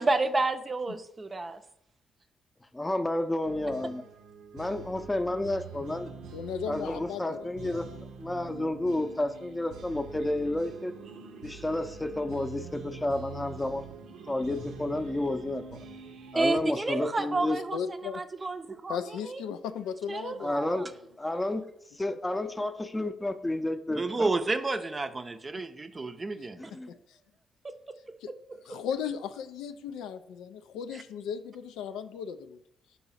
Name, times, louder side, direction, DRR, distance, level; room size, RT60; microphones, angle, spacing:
voice 1, 0.0-1.6 16.3-17.8 18.1-19.0 19.3-19.4 20.1-20.9 23.9-26.7 27.6-27.7, right 3 dB, 30° right, 9 dB, 0.5 m, -30 dB
voice 2, 2.7-4.0 4.5-6.1 6.7-7.9 8.2-10.9 11.4-13.9 14.3-15.8 16.3-17.6 20.4-20.9 21.2-21.6 22.0-24.3 26.6-26.9, left 1 dB, 15° left, 9 dB, 0.6 m, -31 dB
sound 1, 3.4-16.6, right 5 dB, 80° right, 0.6 m, -45 dB
voice 3, 6.3-8.0 17.0-17.1 17.7-18.2 18.9-20.9 22.1-22.2 26.7-27.2 28.2-28.3 28.7-32.6, left 7 dB, 85° left, 9 dB, 0.3 m, -37 dB
4.7 x 4.0 x 5.6 m, 0.77 s
supercardioid pair, 60°, 0 cm